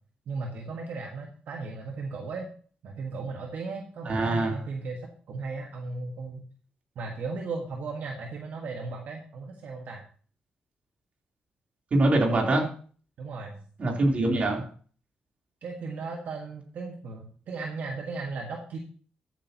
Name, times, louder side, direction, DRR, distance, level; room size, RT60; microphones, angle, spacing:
voice 1, 0.3-2.5 2.8-6.5 6.9-10.0 13.2-13.6 15.6-18.8, right 4 dB, 70° right, 1 dB, 1.5 m, -36 dB
voice 2, 4.0-4.6 11.9-12.7 13.8-14.7, right 2 dB, 45° right, 0 dB, 3.4 m, -24 dB
14.0 x 8.9 x 2.9 m, 0.43 s
cardioid pair, 105°, 3 cm